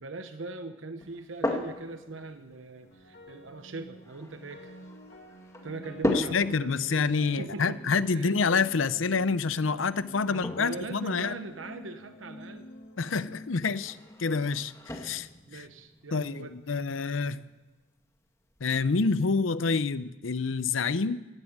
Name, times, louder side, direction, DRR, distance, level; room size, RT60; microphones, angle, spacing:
voice 1, 0.0-4.7 5.6-8.3 10.3-12.7 15.5-16.5, right 3 dB, 85° right, 9 dB, 1.0 m, -41 dB
sound 1, 1.0-19.1, left 1 dB, 15° left, 1.9 m, -39 dB
sound 2, 2.8-15.1, equal, 60° left, 2.1 m, -50 dB
voice 2, 6.0-11.4 13.0-15.7 16.1-17.4 18.6-21.2, left 4 dB, 90° left, 15 dB, 0.7 m, -28 dB
15.0 x 11.0 x 8.9 m, 1.2 s
head